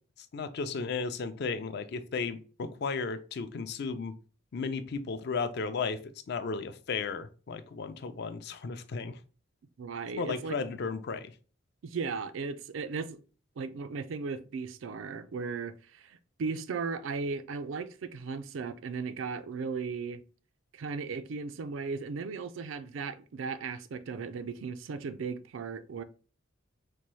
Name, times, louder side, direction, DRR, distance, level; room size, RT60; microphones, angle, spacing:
voice 1, 0.3-4.1 4.5-6.0 6.3-9.2 10.2-11.3, left 4 dB, 55° left, 0.4 m, -34 dB
voice 2, 9.8-10.6 11.8-13.2 13.6-20.2 20.7-26.0, right 5 dB, 90° right, 0.4 m, -36 dB
4.2 x 2.2 x 3.1 m
head